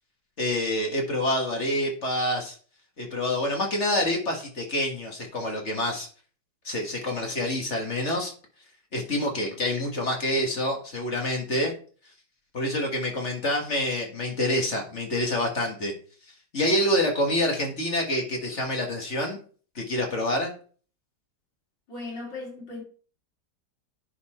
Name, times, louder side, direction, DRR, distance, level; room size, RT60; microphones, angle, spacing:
voice 1, 0.4-2.5 3.0-6.1 6.6-8.3 8.9-11.7 12.5-15.9 16.5-19.4 19.8-20.5, left 1 dB, 40° left, 2.0 m, -27 dB
voice 2, 21.9-22.8, left 3 dB, 85° left, 3.9 m, -37 dB
10.0 x 4.2 x 4.4 m
omnidirectional pair, 1.9 m